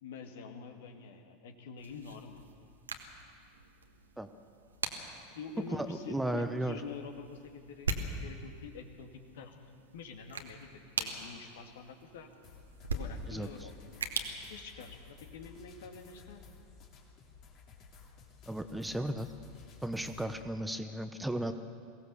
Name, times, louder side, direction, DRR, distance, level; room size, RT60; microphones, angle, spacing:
voice 1, 0.0-2.4 5.3-9.6 9.9-10.7 11.0-12.3 12.9-13.9 14.5-16.5, left 5 dB, 65° left, 5 dB, 2.0 m, -47 dB
sound 1, 1.8-15.4, right 3 dB, 80° right, 1.6 m, -42 dB
voice 2, 5.7-6.8 13.3-13.5 18.5-19.3 19.8-21.5, right 1 dB, 5° right, 9 dB, 1.0 m, -35 dB
sound 2, 12.4-20.4, left 5 dB, 45° left, 3.0 m, -55 dB
22.5 x 17.0 x 6.9 m, 2.3 s
figure-of-eight pair, 85°, 0 cm